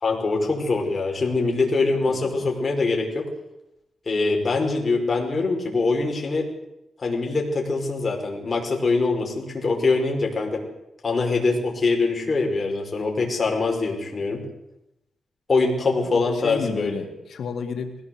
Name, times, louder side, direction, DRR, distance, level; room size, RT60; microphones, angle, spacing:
voice 1, 0.0-3.2 4.1-6.5 7.0-10.6 11.0-14.5 15.5-16.9, left 3 dB, 30° left, 0 dB, 5.2 m, -23 dB
voice 2, 2.1-2.5 16.0-18.1, left 5 dB, 70° left, 6 dB, 2.4 m, -32 dB
21.0 x 17.5 x 8.0 m, 0.86 s
wide cardioid pair, 150°, 0 cm